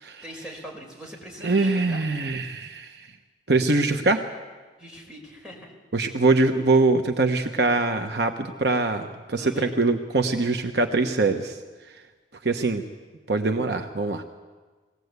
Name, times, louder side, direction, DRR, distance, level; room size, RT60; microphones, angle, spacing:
voice 1, 0.2-2.1 4.8-5.7 9.3-9.7, equal, 5° right, -2 dB, 5.0 m, -41 dB
voice 2, 1.4-3.1 3.5-4.2 5.9-11.6 12.4-12.8 13.3-14.2, right 3 dB, 60° right, 5 dB, 1.1 m, -23 dB
21.0 x 17.5 x 8.2 m, 1.4 s
head